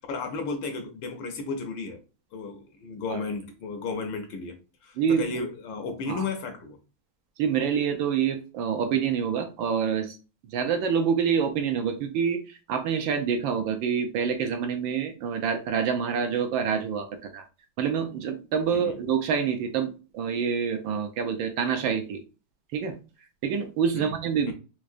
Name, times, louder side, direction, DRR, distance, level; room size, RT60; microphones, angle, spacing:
voice 1, 0.1-2.0 2.3-6.8 18.7-19.0 24.0-24.1 24.5-24.6, left 4 dB, 75° left, 1.2 m, -34 dB
voice 2, 5.0-5.4 6.1-6.2 7.4-10.2 10.5-17.5 17.8-22.2 22.7-23.0 23.4-24.5, right 7 dB, 75° right, 1.2 m, -27 dB
4.7 x 2.0 x 2.5 m
omnidirectional pair, 2.4 m